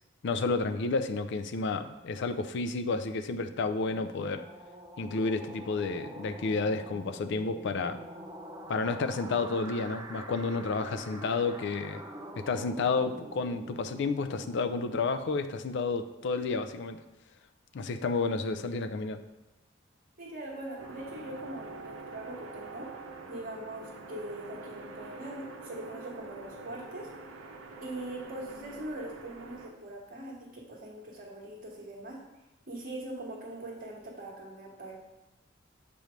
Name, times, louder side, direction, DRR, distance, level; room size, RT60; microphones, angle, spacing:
voice 1, 0.2-4.5 5.0-8.0 8.7-12.0 12.4-17.0 17.7-19.2, left 4 dB, 65° left, 9 dB, 0.4 m, -31 dB
sound 1, 3.1-15.5, right 1 dB, 20° right, 0.6 m, -46 dB
voice 2, 20.2-22.9 23.3-27.1 27.8-32.2 32.7-34.9, right 1 dB, 50° right, -8 dB, 1.4 m, -42 dB
sound 2, 20.8-29.7, right 3 dB, 90° right, 0.7 m, -45 dB
6.9 x 3.1 x 5.1 m, 1.0 s
head